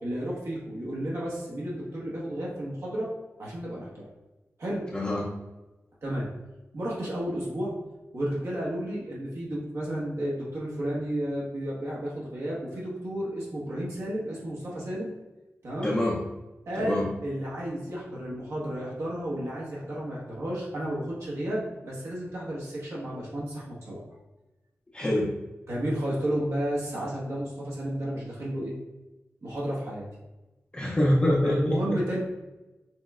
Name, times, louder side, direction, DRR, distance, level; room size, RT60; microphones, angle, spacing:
voice 1, 0.0-3.1 3.4-4.0 4.6-4.8 6.0-6.3 6.7-7.7 8.1-15.1 15.6-15.9 16.7-24.0 25.7-28.7 29.4-30.0 31.4-32.2, right 1 dB, 70° right, -6 dB, 1.3 m, -32 dB
voice 2, 4.9-5.3 15.8-16.2 16.7-17.1 24.9-25.3 30.7-32.0, left 1 dB, 20° left, -5 dB, 0.6 m, -25 dB
6.2 x 3.2 x 2.4 m, 1.1 s
wide cardioid pair, 140°, 5 cm